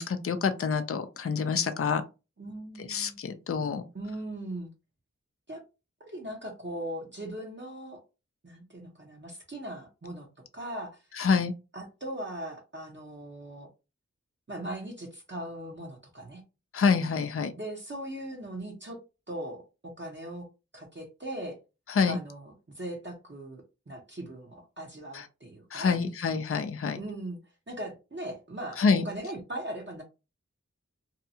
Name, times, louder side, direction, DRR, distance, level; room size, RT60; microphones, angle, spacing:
voice 1, 0.0-2.0 2.8-3.8 11.2-11.5 16.7-17.5 21.9-22.2 25.1-25.3 25.7-27.0 28.8-29.0, left 5 dB, 50° left, 0.4 m, -27 dB
voice 2, 2.4-3.2 3.9-4.7 5.5-5.6 6.0-8.0 8.4-10.3 10.5-11.0 11.7-13.7 14.5-16.4 17.5-19.0 19.3-20.5 20.7-21.6 22.1-26.0 27.0-27.4 27.7-30.0, right 1 dB, 40° right, 0.8 m, -39 dB
2.7 x 2.3 x 2.7 m
wide cardioid pair, 40°, 30 cm